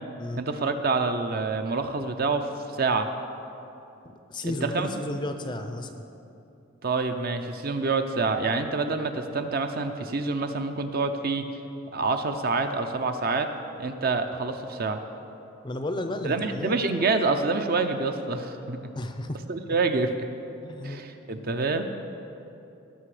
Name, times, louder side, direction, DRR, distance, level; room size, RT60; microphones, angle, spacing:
voice 1, 0.4-2.5 2.7-3.1 4.5-4.9 6.8-11.5 11.9-13.5 13.8-15.0 16.2-18.9 19.5-20.1 20.8-21.9, right 3 dB, 45° right, 7 dB, 0.6 m, -27 dB
voice 2, 4.0-6.0 15.6-16.8 18.9-19.4 20.6-21.0, left 1 dB, 20° left, 7 dB, 0.5 m, -33 dB
18.0 x 6.1 x 4.9 m, 2.8 s
head